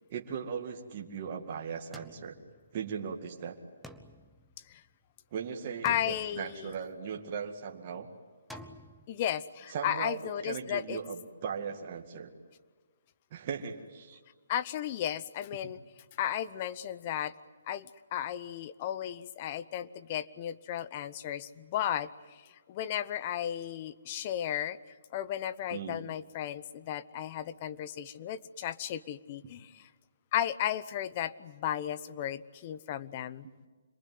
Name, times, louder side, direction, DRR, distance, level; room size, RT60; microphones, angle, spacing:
voice 1, 0.1-2.4 2.7-3.6 5.3-8.1 9.7-12.3 13.3-14.2 25.7-26.0, right 6 dB, 35° right, 2 dB, 2.1 m, -38 dB
sound 1, 1.9-3.1 3.8-5.3 5.9-7.2 8.5-9.1, equal, ahead, 1.0 m, -51 dB
voice 2, 5.8-6.7 9.1-11.0 14.5-15.8 16.2-17.3 17.7-24.8 25.1-29.9 30.3-33.5, left 10 dB, 30° left, 14 dB, 0.8 m, -34 dB
27.0 x 21.5 x 9.5 m, 1.4 s
hypercardioid pair, 165°, 0 cm